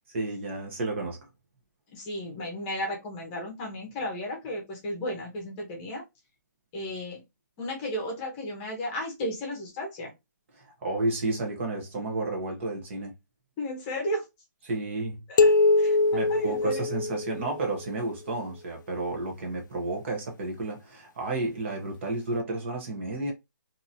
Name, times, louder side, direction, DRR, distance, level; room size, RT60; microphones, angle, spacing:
voice 1, 0.1-1.3 10.5-13.1 14.6-15.2 16.1-23.3, right 2 dB, 40° right, 0.9 m, -31 dB
voice 2, 1.9-6.0 6.7-7.2 7.6-10.1 13.6-14.2 15.3-16.0 16.3-16.9, left 1 dB, 20° left, 0.9 m, -34 dB
sound 1, 15.4-17.8, left 3 dB, 70° left, 0.4 m, -23 dB
2.8 x 2.7 x 2.6 m
hypercardioid pair, 165°, 10 cm